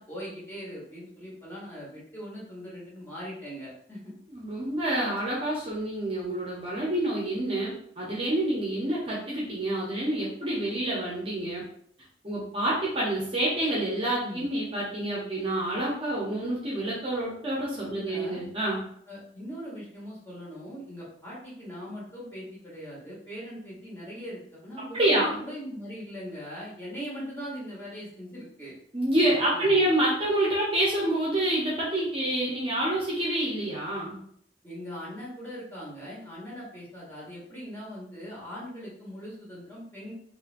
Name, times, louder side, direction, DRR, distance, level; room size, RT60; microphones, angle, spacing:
voice 1, 0.0-4.1 14.2-14.4 17.8-18.4 19.1-28.7 29.5-29.9 34.6-40.1, equal, 15° left, -8 dB, 1.3 m, -40 dB
voice 2, 4.3-11.6 12.2-18.8 24.9-25.3 28.9-34.2, right 1 dB, 30° right, -5 dB, 0.7 m, -27 dB
3.1 x 2.7 x 2.5 m, 0.66 s
head